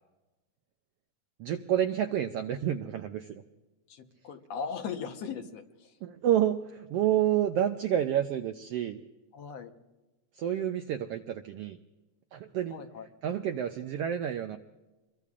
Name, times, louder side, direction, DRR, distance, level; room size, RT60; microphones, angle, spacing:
voice 1, 1.4-3.4 6.0-9.0 10.3-11.8 12.3-12.8 13.2-14.6, right 10 dB, 80° right, 7 dB, 1.3 m, -29 dB
voice 2, 3.9-5.9 9.3-9.7 12.7-13.1, left 6 dB, 65° left, 5 dB, 2.1 m, -38 dB
25.0 x 22.5 x 2.5 m, 1.1 s
omnidirectional pair, 3.4 m